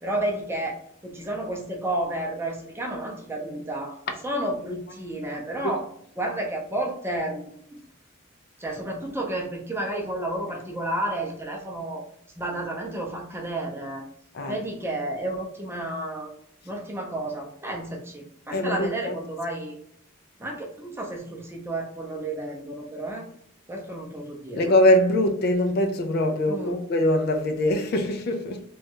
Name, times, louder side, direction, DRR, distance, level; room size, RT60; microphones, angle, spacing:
voice 1, 0.0-4.0 4.2-5.9 6.2-7.8 8.6-12.0 12.4-14.0 14.5-16.3 16.6-19.7 20.4-23.3 23.7-24.7 26.5-26.8, right 1 dB, 10° right, 0.6 m, -31 dB
voice 2, 18.5-19.2 24.6-28.6, left 1 dB, 50° left, 0.3 m, -22 dB
3.1 x 2.3 x 2.8 m
head